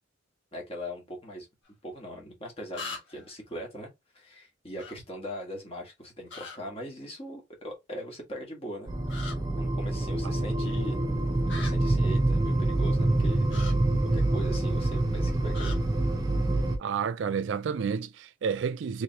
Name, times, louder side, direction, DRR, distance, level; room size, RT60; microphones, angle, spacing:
voice 1, 0.5-1.5 1.8-8.9 9.6-11.0 11.6-13.5 14.1-15.8, equal, 30° left, 1.4 m, -40 dB
sound 1, 1.7-1.8 2.7-3.3 4.8-4.9 6.3-6.6 9.1-9.4 11.5-11.7 13.5-13.7 15.5-15.8, left 4 dB, 70° left, 1.4 m, -39 dB
sound 2, 8.9-16.8, right 2 dB, 20° right, 0.7 m, -26 dB
voice 2, 16.8-19.0, right 6 dB, 70° right, 0.3 m, -30 dB
3.3 x 3.3 x 2.8 m
head